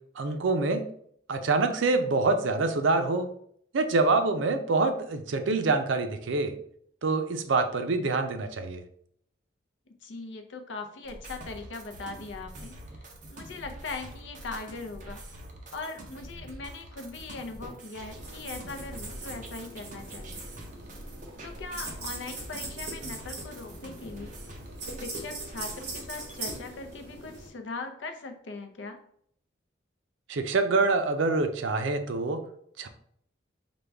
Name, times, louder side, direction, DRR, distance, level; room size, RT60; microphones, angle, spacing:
voice 1, 0.2-0.9 1.3-3.3 3.7-6.6 7.0-8.8 30.3-32.4 32.8-32.9, right 3 dB, 85° right, 8 dB, 0.5 m, -26 dB
voice 2, 10.0-12.8 13.3-15.2 15.7-20.4 21.4-24.3 24.9-29.0, left 3 dB, 75° left, 6 dB, 0.6 m, -40 dB
sound 1, 11.0-26.6, right 1 dB, 40° right, 0.7 m, -45 dB
sound 2, 18.1-27.5, right 2 dB, 60° right, 1.1 m, -41 dB
5.1 x 2.2 x 3.4 m, 0.67 s
head